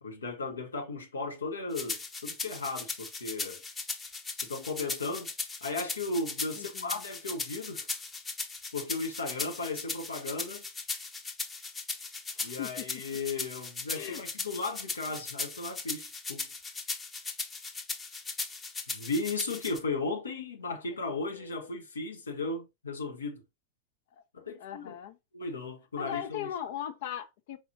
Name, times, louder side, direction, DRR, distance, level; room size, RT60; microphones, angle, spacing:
voice 1, 0.0-3.6 4.4-5.3 5.6-7.9 8.7-10.6 12.4-16.5 18.9-23.4 24.3-24.9 25.3-26.5, left 3 dB, 70° left, 1.0 m, -36 dB
sound 1, 1.7-19.8, left 4 dB, 15° left, 0.8 m, -38 dB
voice 2, 6.6-7.0 12.3-12.9 13.9-14.2 20.9-21.0 21.3-21.7 24.6-25.2 26.0-27.6, left 10 dB, 55° left, 0.5 m, -39 dB
4.6 x 4.2 x 2.7 m
figure-of-eight pair, 90°, 0 cm